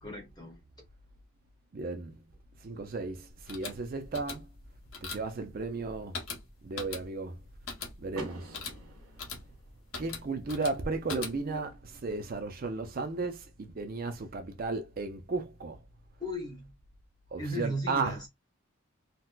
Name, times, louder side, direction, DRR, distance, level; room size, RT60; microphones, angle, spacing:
voice 1, 0.0-0.6 16.2-16.7 17.4-18.3, equal, 20° left, 1.0 m, -36 dB
voice 2, 1.7-2.2 2.6-4.5 5.0-6.2 6.6-7.4 8.0-8.7 10.0-15.8 17.3-18.2, right 3 dB, 40° right, 0.4 m, -35 dB
sound 1, 3.3-11.7, left 4 dB, 80° left, 0.9 m, -43 dB
Car / Door, 8.1-10.1, right 1 dB, 75° right, 1.2 m, -46 dB
4.0 x 2.1 x 2.2 m
head